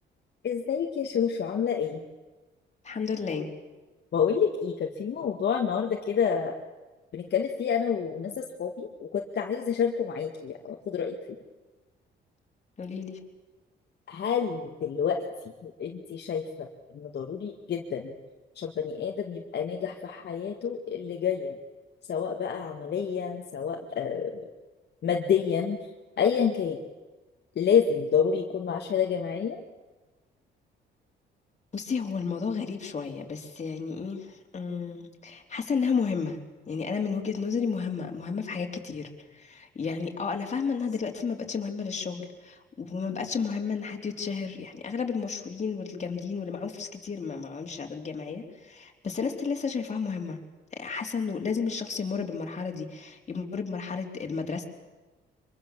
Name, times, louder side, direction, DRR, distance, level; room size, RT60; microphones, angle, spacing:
voice 1, 0.4-2.0 4.1-6.5 7.1-11.2 14.1-15.2 15.6-16.7 16.9-18.1 18.6-21.5 22.1-24.5 25.0-25.8 26.2-26.8 27.6-29.6, left 7 dB, 55° left, 2 dB, 2.0 m, -28 dB
voice 2, 2.8-3.5 12.8-13.2 31.7-36.4 36.7-50.4 50.7-54.6, left 5 dB, 35° left, 2 dB, 3.8 m, -32 dB
24.0 x 23.5 x 7.6 m, 1.2 s
cardioid pair, 90°, 20 cm